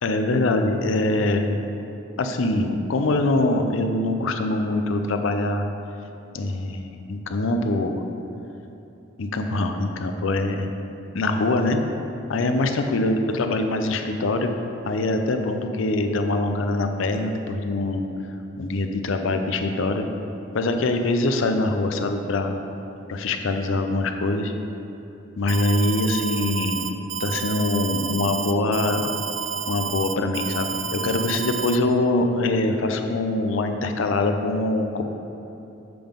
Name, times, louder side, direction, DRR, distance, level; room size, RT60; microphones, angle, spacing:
voice 1, 0.0-1.6 2.2-5.6 6.3-8.0 9.2-10.7 11.1-11.8 12.3-14.5 14.8-18.1 18.6-20.1 20.5-22.6 23.1-24.5 25.4-26.8 27.2-29.2 29.7-35.0, left 2 dB, 75° left, 6 dB, 0.5 m, -23 dB
Alarm, 25.5-31.8, right 7 dB, 70° right, 0.4 m, -30 dB
7.7 x 3.6 x 5.1 m, 2.9 s
head